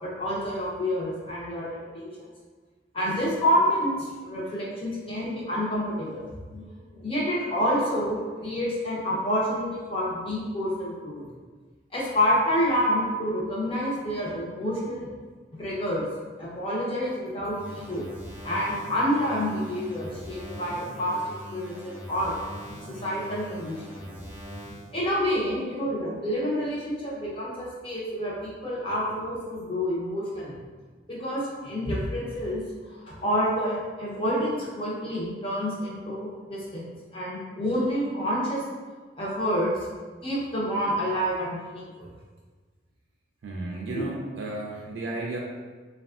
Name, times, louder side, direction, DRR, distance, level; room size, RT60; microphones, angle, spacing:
voice 1, 0.0-2.1 2.9-6.2 6.5-6.6 6.9-11.3 11.9-15.1 15.6-16.1 16.4-18.1 18.4-21.2 21.5-22.3 23.0-23.8 24.9-30.6 31.1-32.6 33.0-38.6 39.2-39.7 40.2-42.1 43.9-44.1, equal, 30° left, -6 dB, 0.7 m, -28 dB
sound 1, 17.5-24.9, equal, 10° right, 0.4 m, -41 dB
voice 2, 43.4-45.4, right 2 dB, 85° right, -2 dB, 0.4 m, -33 dB
3.3 x 2.3 x 2.4 m, 1.4 s
head